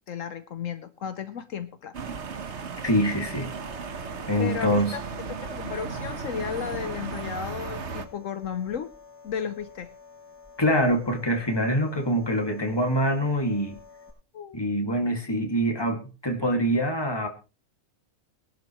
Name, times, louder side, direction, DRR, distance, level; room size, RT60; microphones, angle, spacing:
voice 1, 0.1-2.0 4.4-5.0 5.5-8.9 9.2-9.9 14.3-14.6, left 8 dB, 70° left, 11 dB, 1.2 m, -34 dB
sound 1, 1.9-8.1, right 5 dB, 55° right, 1.5 m, -35 dB
voice 2, 2.8-3.5 4.3-5.0 10.6-13.8 14.5-17.3, equal, 15° left, 4 dB, 2.2 m, -25 dB
sound 2, 2.9-14.1, left 4 dB, 10° right, 6.6 m, -50 dB
21.5 x 11.5 x 3.1 m, 0.33 s
omnidirectional pair, 1.4 m